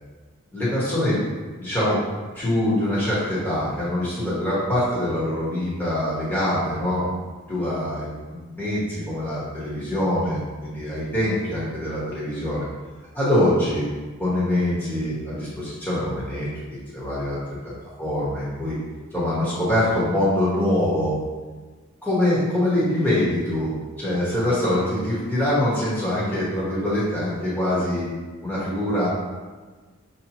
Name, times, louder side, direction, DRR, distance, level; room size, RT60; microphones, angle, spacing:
voice 1, 0.5-1.2 1.6-2.0 2.3-7.1 7.5-12.7 13.1-13.9 14.2-16.5 16.9-17.4 17.6-17.7 18.0-18.7 19.1-21.1 22.0-28.0 28.4-29.1, left 1 dB, 10° left, -10 dB, 1.2 m, -24 dB
6.4 x 2.8 x 2.9 m, 1.3 s
head